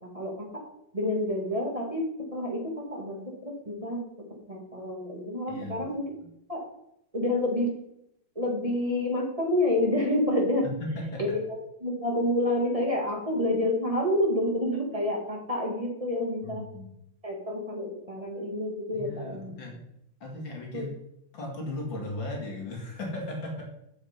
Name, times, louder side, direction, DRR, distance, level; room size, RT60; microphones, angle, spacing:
voice 1, 0.0-0.6 0.9-4.0 4.5-6.1 6.5-6.6 7.1-7.7 8.4-10.7 11.2-11.4 11.8-16.6 17.2-19.6 20.7-20.8, left 1 dB, 20° right, -1 dB, 2.0 m, -28 dB
voice 2, 5.5-5.8 6.2-6.3 10.8-11.4 16.4-16.9 18.9-19.8 20.2-21.0 21.3-23.7, left 1 dB, 80° left, -1 dB, 2.8 m, -36 dB
7.7 x 7.2 x 5.2 m, 0.77 s
omnidirectional pair, 2.1 m